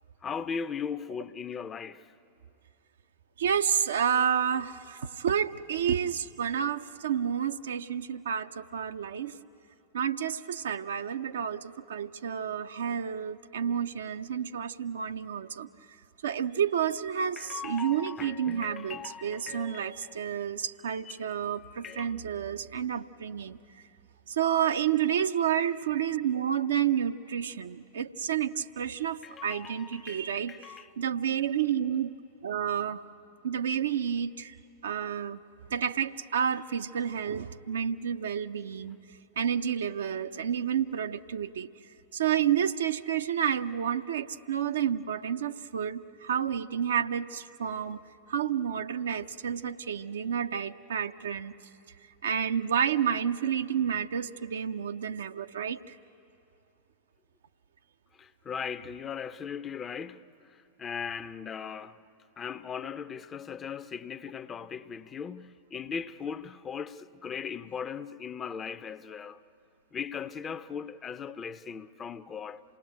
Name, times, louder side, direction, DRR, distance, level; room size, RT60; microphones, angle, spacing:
voice 1, 0.2-2.1 17.4-20.2 21.0-21.2 21.8-22.1 29.2-30.9 58.2-62.0 62.4-69.4 69.9-72.6, left 6 dB, 25° left, 0.6 m, -38 dB
voice 2, 3.4-9.3 9.9-15.7 16.2-23.6 24.3-30.5 31.0-32.1 32.4-33.0 33.4-34.6 34.8-35.4 35.7-39.0 39.4-41.7 42.1-48.0 48.3-51.6 52.2-56.0, right 8 dB, 65° right, 0.6 m, -30 dB
27.5 x 18.5 x 9.2 m
figure-of-eight pair, 90°, 0 cm